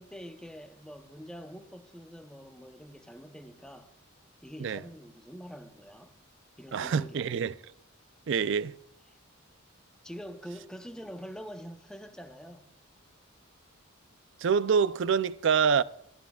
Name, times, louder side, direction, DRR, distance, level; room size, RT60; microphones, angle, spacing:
voice 1, 0.0-3.9 4.4-6.1 6.6-7.4 10.0-12.7, equal, 5° left, 0.7 m, -45 dB
voice 2, 6.7-7.5 8.3-8.8 14.4-15.8, right 6 dB, 60° right, 0.4 m, -26 dB
24.5 x 14.0 x 2.3 m
head